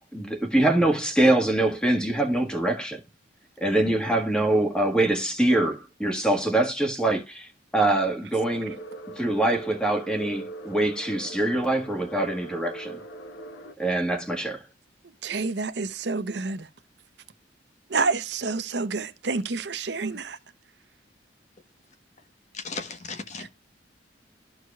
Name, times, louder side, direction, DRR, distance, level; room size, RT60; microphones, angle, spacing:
voice 1, 0.0-3.0 3.6-8.8 9.1-13.0 13.8-14.6, right 1 dB, 5° left, 1.6 m, -24 dB
sound 1, 8.4-13.7, right 2 dB, 80° left, 1.0 m, -41 dB
voice 2, 15.2-16.7 17.9-20.4, right 4 dB, 65° right, 0.8 m, -28 dB
voice 3, 22.5-23.5, left 4 dB, 40° left, 1.1 m, -36 dB
13.5 x 4.8 x 2.3 m
head